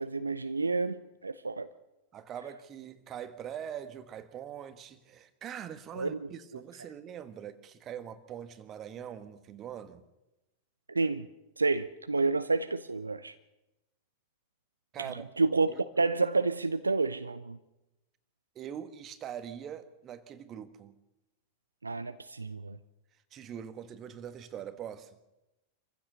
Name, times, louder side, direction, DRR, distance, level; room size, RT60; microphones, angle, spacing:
voice 1, 0.0-1.7 5.9-6.3 10.9-11.3 11.6-13.3 15.0-15.1 15.4-17.6 21.8-22.8, right 3 dB, 80° right, 0.7 m, -29 dB
voice 2, 2.1-10.0 14.9-15.3 15.7-15.8 18.5-20.9 23.3-25.2, right 9 dB, 30° right, 1.6 m, -43 dB
26.0 x 15.5 x 6.7 m
figure-of-eight pair, 90°, 0 cm